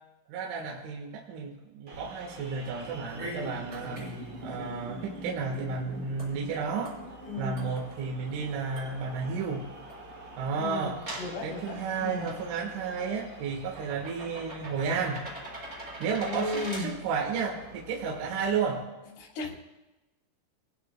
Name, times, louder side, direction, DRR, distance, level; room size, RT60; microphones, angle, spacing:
voice 1, 0.3-4.1 4.4-7.0 7.4-9.7 10.4-11.0 11.4-15.3 16.0-18.9, right 5 dB, 75° right, -1 dB, 3.9 m, -32 dB
sound 1, 1.9-18.6, equal, 15° right, 4.9 m, -45 dB
sound 2, 1.9-18.4, right 2 dB, 40° right, 2.9 m, -46 dB
voice 2, 7.3-7.8 10.6-12.4 16.2-17.0 19.2-19.5, left 2 dB, 75° left, -4 dB, 5.8 m, -36 dB
28.0 x 19.5 x 2.3 m, 1.1 s
omnidirectional pair, 5.8 m